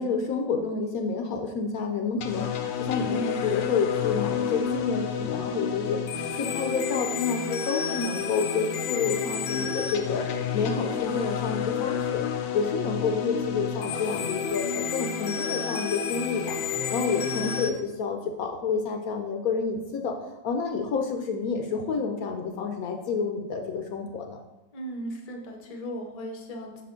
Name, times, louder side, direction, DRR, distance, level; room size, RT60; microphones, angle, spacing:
voice 1, 0.0-6.0 6.3-10.2 10.5-12.2 12.5-16.5 16.9-24.4, left 5 dB, 70° left, 3 dB, 0.9 m, -29 dB
sound 1, 2.2-17.7, left 7 dB, 85° left, 1.3 m, -30 dB
voice 2, 24.7-26.8, equal, 50° left, 2 dB, 0.4 m, -37 dB
5.9 x 5.6 x 3.7 m, 1.0 s
omnidirectional pair, 2.0 m